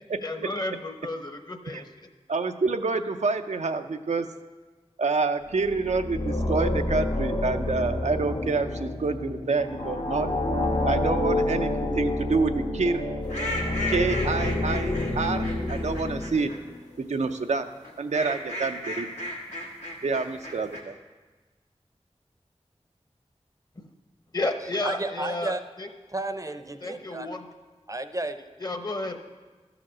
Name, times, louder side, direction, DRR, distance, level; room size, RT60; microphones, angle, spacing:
voice 1, 0.2-2.1 23.8-23.9 24.3-25.9 26.8-27.5 28.6-29.2, left 2 dB, 35° left, 6 dB, 0.9 m, -32 dB
voice 2, 2.3-4.3 5.0-10.3 10.8-13.1 13.9-16.5 17.0-17.7 18.0-19.1 20.0-21.0, right 4 dB, 90° right, 7 dB, 0.5 m, -27 dB
sound 1, 5.5-16.8, left 1 dB, 70° left, 1.4 m, -28 dB
sound 2, 13.3-16.6 17.8-20.8, left 1 dB, 85° left, 1.5 m, -35 dB
voice 3, 24.8-25.6 26.1-27.3 27.9-28.4, right 2 dB, 30° right, 10 dB, 0.5 m, -32 dB
13.0 x 4.9 x 6.1 m, 1.3 s
wide cardioid pair, 50°, 11 cm